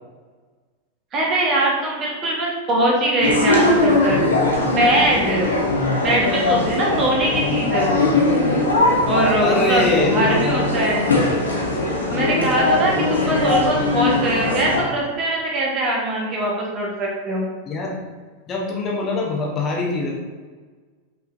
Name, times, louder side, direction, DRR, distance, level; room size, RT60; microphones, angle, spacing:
voice 1, 1.1-4.2 4.7-5.6 6.0-8.1 9.1-11.1 12.1-17.5, right 1 dB, 30° right, -3 dB, 1.1 m, -22 dB
sound 1, 3.2-14.8, left 2 dB, 75° left, 0.8 m, -20 dB
voice 2, 9.4-10.9 12.9-13.1 17.7-18.0 18.5-20.2, left 2 dB, 25° left, -2 dB, 0.9 m, -24 dB
5.6 x 3.6 x 2.5 m, 1.4 s
figure-of-eight pair, 90°, 0 cm